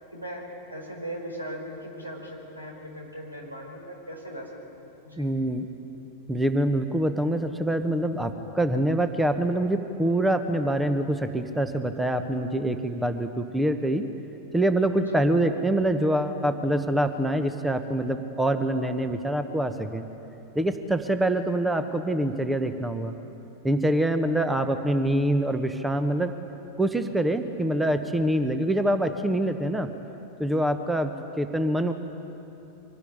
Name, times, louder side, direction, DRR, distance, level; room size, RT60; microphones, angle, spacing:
voice 1, 0.1-5.3 15.1-15.2, equal, 85° right, 0 dB, 4.9 m, -39 dB
voice 2, 5.2-5.7 6.3-14.0 14.5-20.0 20.5-23.1 23.6-26.3 26.8-29.9 30.4-31.9, right 1 dB, 5° right, 9 dB, 1.1 m, -25 dB
24.0 x 18.0 x 9.7 m, 3.0 s
figure-of-eight pair, 90°, 0 cm